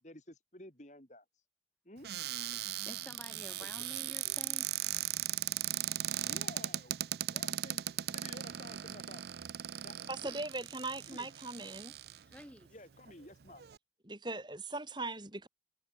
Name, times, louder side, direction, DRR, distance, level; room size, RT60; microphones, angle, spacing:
voice 1, 0.0-1.2 1.8-2.1 3.6-3.7 4.2-4.4 6.3-6.9 7.3-7.8 8.1-9.3 9.8-9.9 10.2-10.4 11.1-11.3 12.7-13.6, left 1 dB, 40° left, 4.3 m, -52 dB
Cupboard open or close, 2.0-12.4 13.1-13.2 13.4-13.8, right 13 dB, 65° right, 0.5 m, -38 dB
voice 2, 2.5-4.7 12.3-12.7, equal, 5° left, 4.0 m, -51 dB
voice 3, 10.1-12.0 14.0-15.5, right 2 dB, 25° right, 3.9 m, -40 dB
head